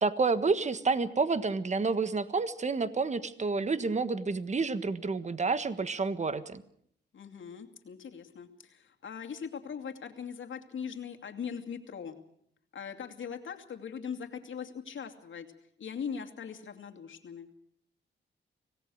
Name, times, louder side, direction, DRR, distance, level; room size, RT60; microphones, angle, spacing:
voice 1, 0.0-6.6, right 4 dB, 35° right, 13 dB, 1.5 m, -29 dB
voice 2, 7.1-12.2 12.7-15.5 15.8-17.5, left 7 dB, 80° left, 4 dB, 2.6 m, -40 dB
25.5 x 18.0 x 6.4 m, 0.68 s
cardioid pair, 90°, 20 cm